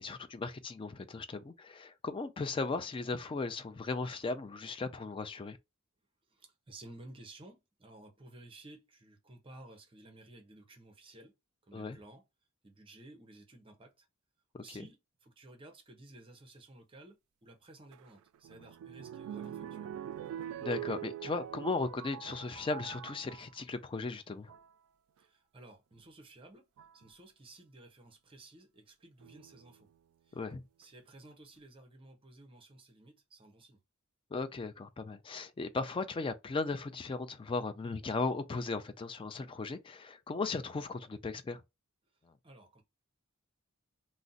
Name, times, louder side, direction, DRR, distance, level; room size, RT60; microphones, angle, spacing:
voice 1, 0.0-5.6 11.7-12.0 14.5-14.9 20.6-24.5 30.3-30.6 34.3-41.6, left 3 dB, 25° left, 0.3 m, -37 dB
voice 2, 6.3-11.3 11.7-12.2 12.6-14.1 14.6-19.9 25.2-29.9 30.2-30.4 30.8-33.8 42.4-42.8, right 2 dB, 25° right, 0.6 m, -55 dB
sound 1, 17.9-23.6 24.3-24.7 26.0-26.1 26.8-27.1 29.2-29.8 30.5-30.6 30.8-30.9, right 10 dB, 85° right, 0.3 m, -44 dB
2.5 x 2.0 x 3.8 m
head